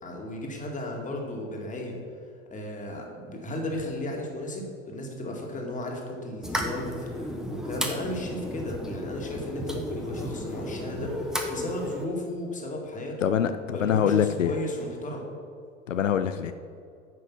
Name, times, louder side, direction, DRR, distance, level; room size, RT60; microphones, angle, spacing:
voice 1, 0.0-2.0 2.5-13.3 13.7-15.3, left 1 dB, 20° left, 0 dB, 2.0 m, -35 dB
sound 1, 6.4-12.0, equal, ahead, 1.0 m, -33 dB
voice 2, 13.2-14.5 15.9-16.5, left 8 dB, 85° left, 9 dB, 0.5 m, -24 dB
9.2 x 5.9 x 6.0 m, 2.3 s
figure-of-eight pair, 80°, 37 cm